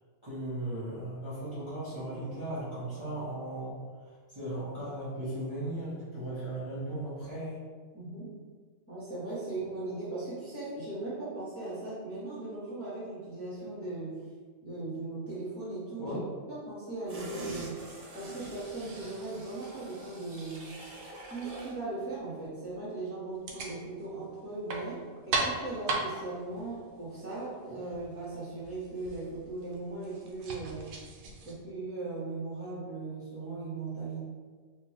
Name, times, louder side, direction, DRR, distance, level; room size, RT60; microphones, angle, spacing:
voice 1, 0.2-3.7 4.0-7.6 16.0-16.2, right 1 dB, 25° right, -12 dB, 1.0 m, -37 dB
voice 2, 7.9-8.3 8.9-14.2 14.6-16.2 16.5-17.8 18.1-20.7 21.2-30.9 31.4-34.2, right 3 dB, 10° left, -11 dB, 1.1 m, -38 dB
sound 1, 17.1-21.8 22.2-22.3, right 1 dB, 50° right, 0.4 m, -45 dB
sound 2, 23.3-31.5, right 3 dB, 85° right, 1.1 m, -38 dB
3.9 x 2.7 x 3.0 m, 1.5 s
omnidirectional pair, 1.4 m